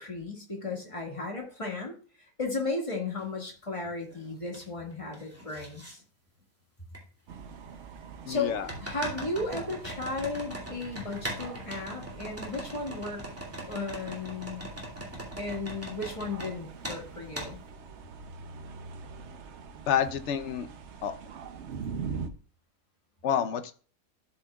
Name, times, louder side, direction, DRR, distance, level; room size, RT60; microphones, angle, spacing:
voice 1, 0.0-6.0 8.3-13.3 13.7-14.7 15.4-17.6, left 3 dB, 20° left, 0 dB, 1.9 m, -35 dB
sound 1, 3.2-3.3 3.8-4.6 4.9-5.9 6.9-7.0 8.7-16.5 16.8-17.0 17.3-17.5, equal, 10° right, 2.3 m, -40 dB
sound 2, 7.3-22.3, right 5 dB, 60° right, 0.9 m, -44 dB
voice 2, 8.2-8.7 19.9-20.7 21.0-21.2 23.2-23.7, left 8 dB, 60° left, 10 dB, 0.9 m, -28 dB
12.0 x 5.7 x 2.3 m, 0.40 s
omnidirectional pair, 1.5 m